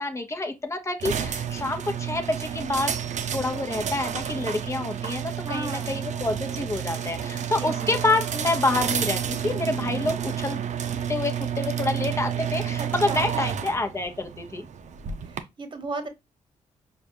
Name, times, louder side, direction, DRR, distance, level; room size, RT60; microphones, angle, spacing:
voice 1, 0.0-10.6 11.1-14.6, left 2 dB, 20° left, 1.0 m, -28 dB
sound 1, 1.0-15.4, right 8 dB, 60° right, 0.6 m, -30 dB
voice 2, 5.4-6.0 7.4-7.9 12.8-13.4 15.2-16.1, right 3 dB, 35° right, 1.1 m, -35 dB
4.8 x 2.4 x 2.6 m
cardioid pair, 75°, 14 cm